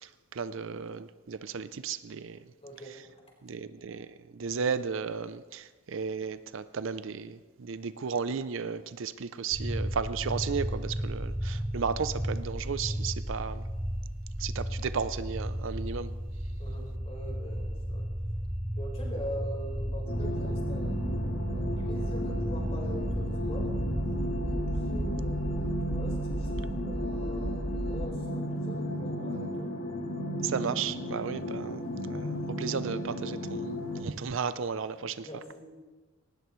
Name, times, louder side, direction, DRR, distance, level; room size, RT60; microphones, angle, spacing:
voice 1, 0.0-2.4 3.4-13.6 14.4-16.1 30.4-33.6 34.0-35.3, right 6 dB, 65° right, 14 dB, 0.5 m, -34 dB
voice 2, 2.6-3.0 16.6-18.1 18.7-21.0 21.5-23.8 24.4-29.7 35.2-35.6, equal, 30° left, -1 dB, 4.2 m, -43 dB
sound 1, 9.5-28.1, equal, 10° right, 0.7 m, -34 dB
sound 2, 20.1-34.0, equal, 55° left, 2.4 m, -34 dB
19.0 x 18.5 x 3.1 m, 1.3 s
head